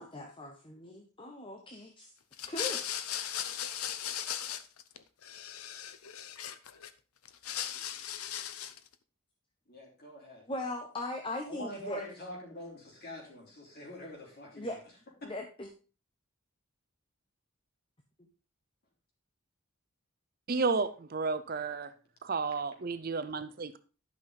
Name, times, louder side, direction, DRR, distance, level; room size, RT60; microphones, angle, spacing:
voice 1, 0.0-2.1 2.5-2.8 10.5-12.0 14.6-14.8 15.2-15.7, left 1 dB, 25° left, 3 dB, 1.0 m, -39 dB
sound 1, 2.3-5.0 5.2-6.9 7.2-8.9, left 10 dB, 85° left, 0.8 m, -37 dB
voice 2, 9.7-10.4 11.4-14.7 15.2-15.3, equal, 45° left, -1 dB, 3.8 m, -45 dB
voice 3, 20.5-21.9 22.2-23.8, right 4 dB, 45° right, 12 dB, 0.6 m, -32 dB
11.5 x 5.9 x 3.9 m, 0.35 s
head